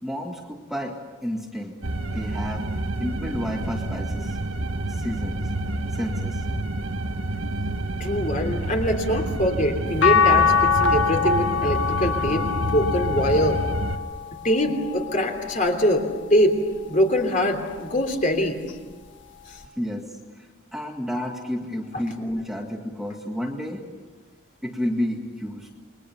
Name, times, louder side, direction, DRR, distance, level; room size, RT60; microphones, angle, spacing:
voice 1, 0.0-1.8 2.1-2.7 3.0-4.4 4.9-5.4 5.9-6.5 19.8-23.9 24.6-25.7, equal, ahead, 0 dB, 1.9 m, -31 dB
sound 1, 1.8-14.0, right 1 dB, 80° right, 1.5 m, -29 dB
voice 2, 8.0-13.6 14.4-16.6 16.9-18.6 19.5-19.6, equal, 40° left, 4 dB, 3.2 m, -23 dB
sound 2, 10.0-16.3 16.9-18.2 19.6-19.7, left 6 dB, 60° left, 1.5 m, -25 dB
29.0 x 22.5 x 7.1 m, 1.4 s
head